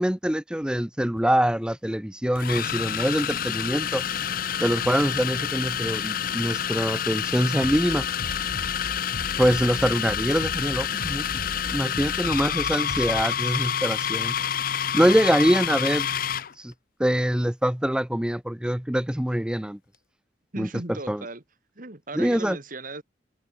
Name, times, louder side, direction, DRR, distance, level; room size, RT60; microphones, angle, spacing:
voice 1, 0.0-4.0 4.6-8.0 9.4-11.2 11.7-14.4 14.9-16.1 16.6-16.7 17.0-19.8 20.6-20.7 21.1-21.2 22.2-22.6, equal, 5° right, 0.6 m, -24 dB
sound 1, 1.0-1.2 2.4-16.5, left 9 dB, 50° left, 0.6 m, -28 dB
Bass drum, 7.6-13.2, left 1 dB, 80° left, 2.2 m, -37 dB
voice 2, 20.5-21.4 21.8-23.0, right 2 dB, 50° right, 2.2 m, -37 dB
head